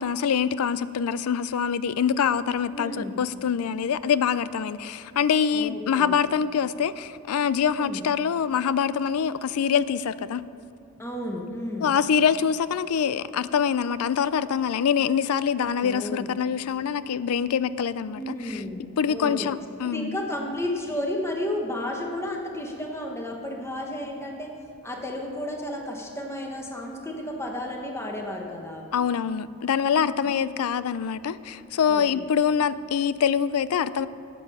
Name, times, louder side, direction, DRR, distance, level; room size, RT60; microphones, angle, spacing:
voice 1, 0.0-10.4 11.8-18.6 19.0-20.2 28.9-34.1, left 7 dB, 75° left, 16 dB, 0.4 m, -25 dB
voice 2, 2.7-3.2 5.5-6.1 7.7-8.0 11.0-11.9 15.5-16.3 18.1-18.8 19.1-19.5 19.8-24.5 24.8-28.9 30.0-30.1 31.9-32.3, left 1 dB, 10° left, 1 dB, 1.0 m, -32 dB
12.5 x 8.4 x 5.5 m, 2.7 s
head